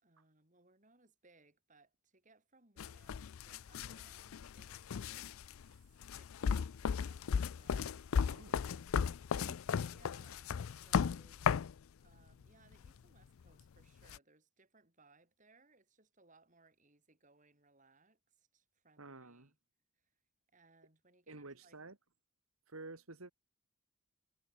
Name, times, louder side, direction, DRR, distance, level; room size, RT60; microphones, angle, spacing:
voice 1, 0.0-8.7 9.9-11.4 12.0-19.6 19.9-20.1 20.5-21.8, right 3 dB, 35° right, 4.6 m, -68 dB
sound 1, 2.8-11.7 12.7-12.9 14.1-14.2, left 6 dB, 80° left, 0.4 m, -36 dB
voice 2, 8.3-8.9 9.3-9.6 19.0-19.5 21.3-22.0 22.7-23.3, right 3 dB, 85° right, 2.4 m, -51 dB
head